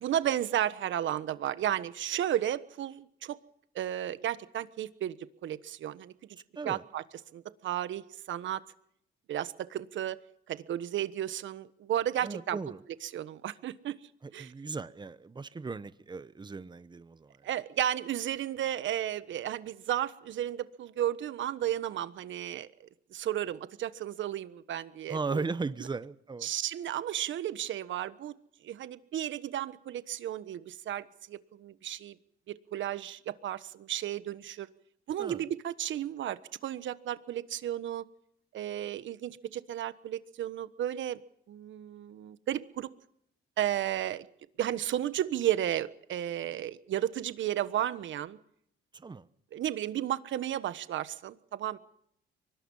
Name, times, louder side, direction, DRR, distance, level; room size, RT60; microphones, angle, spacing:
voice 1, 0.0-3.4 3.7-5.2 5.4-6.1 6.6-7.0 7.3-8.6 9.3-10.2 10.5-12.6 13.1-14.0 14.3-14.5 17.4-22.7 23.1-25.4 26.4-28.3 28.6-32.2 32.5-34.7 35.1-38.0 38.5-41.2 41.5-42.9 43.6-44.3 44.6-48.4 49.5-51.8, right 11 dB, 70° right, 14 dB, 1.3 m, -33 dB
voice 2, 12.2-12.8 14.2-17.5 25.1-26.5 35.2-35.4 48.9-49.3, right 4 dB, 20° right, 15 dB, 1.0 m, -37 dB
24.0 x 19.5 x 5.6 m, 0.72 s
cardioid pair, 90°, 20 cm